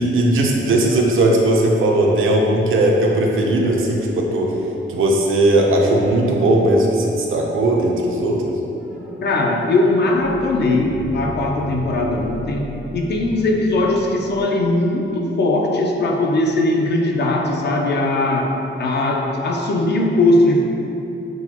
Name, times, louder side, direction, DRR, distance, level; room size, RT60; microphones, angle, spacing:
voice 1, 0.0-4.6 4.9-8.6, right 1 dB, 80° right, 0 dB, 0.5 m, -17 dB
sound 1, 8.8-14.4, right 1 dB, 5° right, 0.3 m, -35 dB
voice 2, 9.2-18.5 18.8-20.6, left 2 dB, 55° left, 0 dB, 0.5 m, -19 dB
6.0 x 2.1 x 2.9 m, 3.0 s
wide cardioid pair, 180°, 21 cm